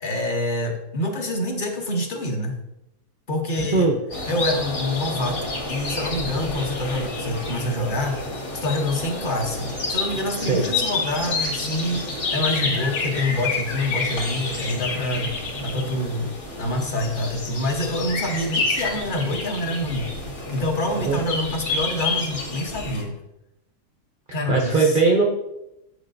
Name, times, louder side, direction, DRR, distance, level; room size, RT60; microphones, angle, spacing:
voice 1, 0.0-2.6 3.3-3.9 4.3-8.2 8.5-15.3 15.6-20.1 20.5-23.1 24.3-25.0, left 1 dB, 40° left, 3 dB, 0.8 m, -26 dB
voice 2, 3.6-4.0 10.4-10.6 20.9-21.2 24.3-25.2, right 4 dB, 70° right, 1 dB, 0.4 m, -20 dB
sound 1, 4.1-23.0, left 3 dB, 70° left, 1.9 m, -30 dB
sound 2, 11.0-11.3 12.5-14.7 16.9-19.0, left 4 dB, 90° left, 2.2 m, -29 dB
8.2 x 6.5 x 2.5 m, 0.88 s
omnidirectional pair, 1.8 m